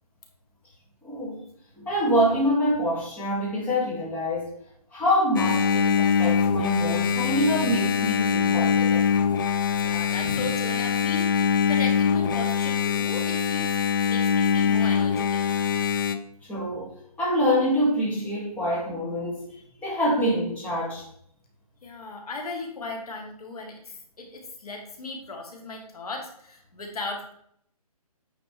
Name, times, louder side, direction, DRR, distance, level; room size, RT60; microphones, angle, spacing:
voice 1, 1.0-1.4 1.8-4.6 4.9-9.1 10.2-10.4 16.5-19.5 19.8-21.0, equal, 10° left, -6 dB, 2.0 m, -26 dB
Engine, 5.4-16.2, left 7 dB, 35° left, 0.5 m, -23 dB
voice 2, 9.8-15.4 21.8-27.3, left 3 dB, 70° left, 2 dB, 2.2 m, -37 dB
9.1 x 4.4 x 4.4 m, 0.68 s
hypercardioid pair, 155°, 20 cm